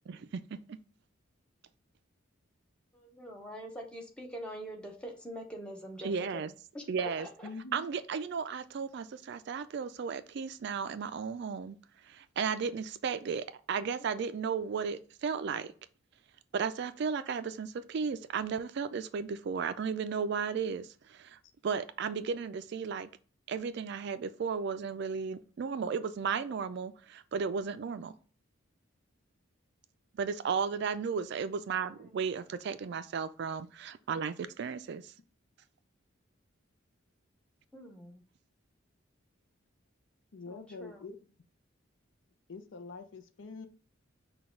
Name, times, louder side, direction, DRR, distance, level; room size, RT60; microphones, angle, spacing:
voice 1, 0.1-0.8 6.0-6.5 6.9-7.3 7.7-11.8 12.0-15.7 16.5-23.1 23.5-28.1 30.1-35.1, right 6 dB, 55° right, 0.3 m, -34 dB
voice 2, 2.9-7.5 31.8-32.2 37.7-38.2 40.5-41.0, equal, 5° left, 0.8 m, -45 dB
voice 3, 7.4-7.9 40.3-41.2 42.5-43.7, left 4 dB, 65° left, 0.5 m, -45 dB
5.9 x 2.3 x 3.7 m
head